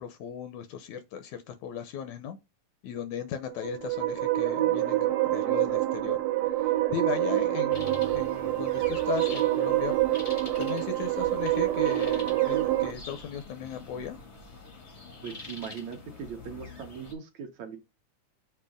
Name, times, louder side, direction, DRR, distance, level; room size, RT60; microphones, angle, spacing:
voice 1, 0.0-2.4 2.8-6.2 6.6-10.0 10.3-14.2, left 8 dB, 80° left, 1.8 m, -37 dB
sound 1, 3.5-12.9, right 15 dB, 85° right, 2.5 m, -26 dB
sound 2, 7.7-17.1, left 3 dB, 60° left, 0.6 m, -45 dB
voice 2, 15.2-17.8, right 7 dB, 70° right, 1.9 m, -40 dB
6.9 x 2.8 x 5.0 m
omnidirectional pair, 3.7 m